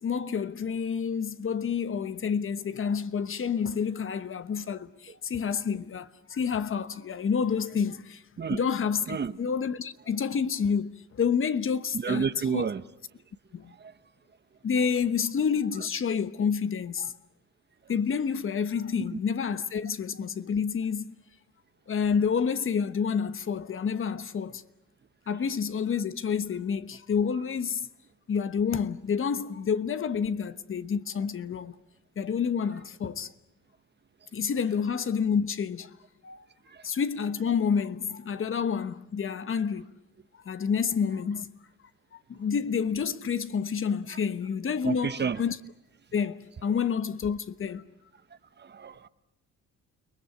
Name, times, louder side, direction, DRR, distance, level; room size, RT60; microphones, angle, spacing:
voice 1, 0.0-8.2 8.5-12.7 13.5-13.7 14.6-17.1 17.9-21.1 21.9-24.6 25.3-27.8 28.3-31.8 32.2-33.3 34.3-36.0 36.2-36.4 36.8-39.9 40.4-41.5 42.1-45.6 46.1-47.8, left 6 dB, 45° left, 1.1 m, -29 dB
voice 2, 11.9-12.8 13.8-13.9 36.7-36.8 44.8-45.4 48.6-49.1, right 6 dB, 35° right, 1.0 m, -30 dB
30.0 x 20.0 x 8.2 m
cardioid pair, 90°, 30 cm